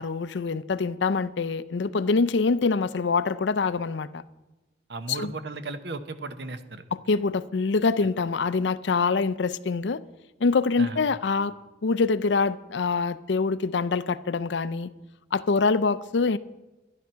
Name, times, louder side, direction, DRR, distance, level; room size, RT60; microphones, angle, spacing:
voice 1, 0.0-4.2 5.1-5.3 6.9-10.0 10.4-11.5 11.8-14.9 15.3-16.4, left 4 dB, 80° left, 0.5 m, -25 dB
voice 2, 4.9-6.8 10.8-11.0, right 3 dB, 70° right, 0.9 m, -35 dB
12.0 x 11.0 x 5.7 m
head